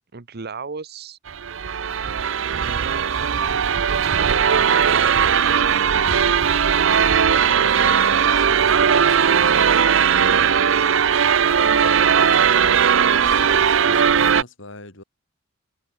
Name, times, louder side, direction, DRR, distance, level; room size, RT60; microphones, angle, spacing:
voice 1, 0.1-1.2 2.6-3.1 4.0-5.8 10.2-10.9, right 5 dB, 50° right, 1.0 m, -34 dB
sound 1, 1.3-14.4, right 7 dB, 70° right, 0.7 m, -18 dB
voice 2, 7.4-9.7 11.7-15.0, left 2 dB, 70° left, 5.4 m, -41 dB
open air
head